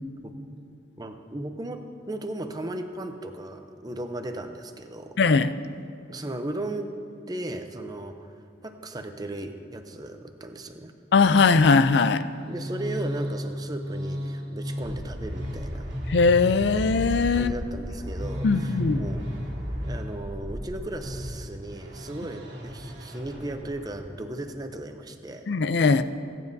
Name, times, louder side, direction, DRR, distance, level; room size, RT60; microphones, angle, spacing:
voice 1, 1.0-5.2 6.1-6.9 7.3-10.9 12.5-15.9 17.3-19.3 19.6-25.5, right 1 dB, 20° right, 6 dB, 0.6 m, -36 dB
voice 2, 5.2-5.5 11.1-12.2 16.1-17.5 18.4-19.0 25.5-26.0, left 4 dB, 65° left, 13 dB, 0.4 m, -20 dB
sound 1, 12.3-24.1, equal, 65° right, 1.7 m, -34 dB
20.0 x 9.3 x 2.7 m, 2.5 s
head